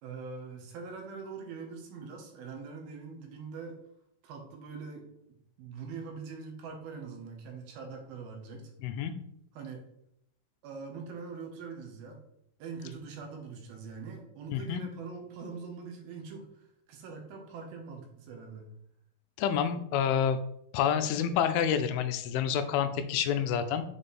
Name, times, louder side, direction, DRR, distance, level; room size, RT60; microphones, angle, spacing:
voice 1, 0.0-3.8 4.2-5.0 5.6-8.7 9.5-9.8 10.6-12.2 12.6-18.7, right 5 dB, 75° right, 2 dB, 2.9 m, -43 dB
voice 2, 14.5-14.8 19.4-20.4 20.7-23.8, left 8 dB, 85° left, 9 dB, 2.5 m, -28 dB
7.4 x 3.3 x 4.3 m, 0.75 s
omnidirectional pair, 4.4 m